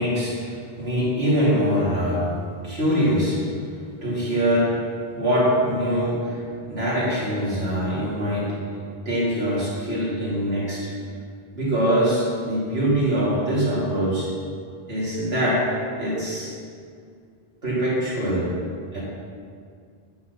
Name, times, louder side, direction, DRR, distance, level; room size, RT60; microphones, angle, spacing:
voice 1, 0.0-2.3 2.6-4.8 5.1-8.6 9.0-10.9 11.5-14.3 14.9-15.7 16.0-16.5 17.6-18.5 18.9-19.0, equal, 80° right, -8 dB, 3.1 m, -23 dB
10.0 x 4.2 x 6.9 m, 2.2 s
omnidirectional pair, 1.0 m